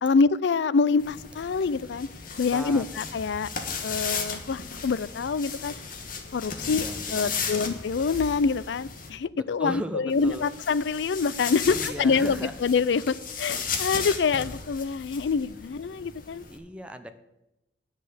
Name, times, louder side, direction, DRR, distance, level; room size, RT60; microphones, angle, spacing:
voice 1, 0.0-2.1 2.4-3.5 3.8-5.7 6.3-6.8 7.1-16.4, left 5 dB, 75° left, 19 dB, 0.4 m, -26 dB
sound 1, 1.0-9.1 10.1-16.6, left 5 dB, 50° left, 1.4 m, -35 dB
voice 2, 2.5-2.8 6.6-7.6 9.3-10.5 11.6-12.5 16.5-17.1, equal, 5° right, 7 dB, 0.7 m, -37 dB
10.0 x 6.5 x 8.3 m, 0.90 s
head